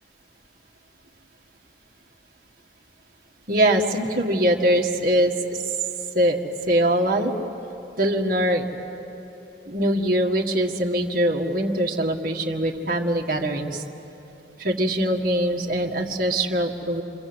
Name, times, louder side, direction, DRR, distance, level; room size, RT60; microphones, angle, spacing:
voice 1, 3.5-5.6 6.1-6.4 6.7-7.3 8.0-8.7 9.7-13.8 14.6-17.0, right 1 dB, 45° right, 1 dB, 1.8 m, -22 dB
28.0 x 25.0 x 7.9 m, 3.0 s
head